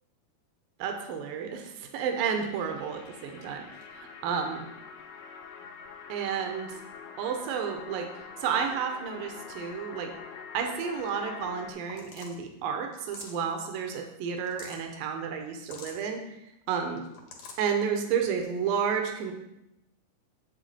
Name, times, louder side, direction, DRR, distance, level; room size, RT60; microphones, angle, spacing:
voice 1, 0.8-3.6 3.9-4.7 6.1-6.8 7.2-10.1 10.5-16.4 16.7-17.0 17.6-19.3, right 7 dB, 80° right, 4 dB, 2.5 m, -31 dB
sound 1, 2.3-11.7, left 6 dB, 80° left, 2.6 m, -45 dB
sound 2, 11.6-11.7 11.9-12.4 12.9-13.5 14.3-14.8 15.6-16.0 17.0-17.7, left 4 dB, 65° left, 2.7 m, -46 dB
8.2 x 8.0 x 4.2 m, 0.87 s
omnidirectional pair, 4.1 m